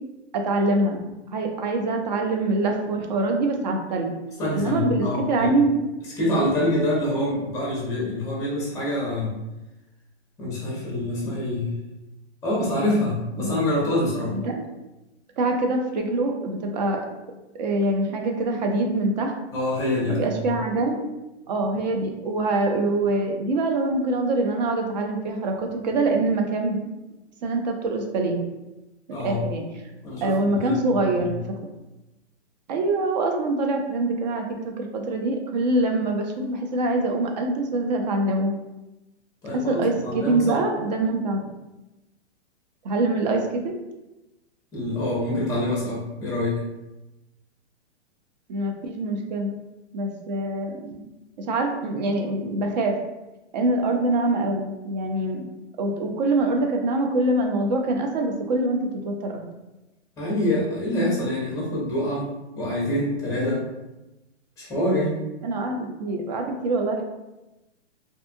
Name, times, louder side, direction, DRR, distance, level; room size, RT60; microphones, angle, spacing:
voice 1, 0.3-1.0 1.3-4.1 4.5-5.8 13.4-13.5 14.3-14.7 15.4-17.1 17.5-19.3 20.1-21.0 21.5-26.8 27.4-28.4 29.2-29.6 30.2-31.4 32.7-34.5 34.8-38.6 39.5-41.5 42.8-43.7 48.5-49.5 49.9-50.9 51.4-53.0 53.5-55.5 55.8-59.4 65.4-67.0, right 2 dB, 40° right, 3 dB, 0.4 m, -24 dB
voice 2, 4.4-5.5 6.2-9.3 10.4-11.7 12.4-14.4 19.5-20.5 29.1-29.5 30.0-30.8 31.1-31.4 39.4-40.6 44.7-46.6 60.2-62.3 62.6-63.6 64.6-65.2, left 1 dB, 10° left, -5 dB, 0.6 m, -26 dB
2.6 x 2.3 x 2.5 m, 1.0 s
hypercardioid pair, 145°, 34 cm